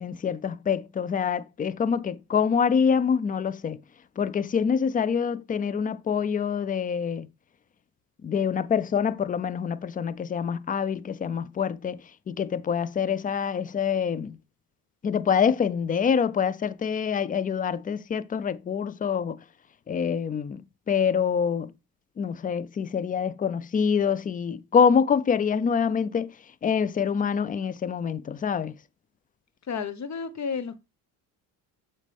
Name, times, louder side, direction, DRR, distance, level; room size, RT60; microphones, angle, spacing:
voice 1, 0.0-3.8 4.2-7.3 8.2-12.0 12.3-14.4 15.0-19.4 19.9-20.6 20.9-21.7 22.2-26.3 26.6-28.7, left 7 dB, 20° left, 0.4 m, -25 dB
voice 2, 29.7-30.8, left 6 dB, 35° left, 1.1 m, -31 dB
7.3 x 5.4 x 3.4 m
hypercardioid pair, 60°, 46 cm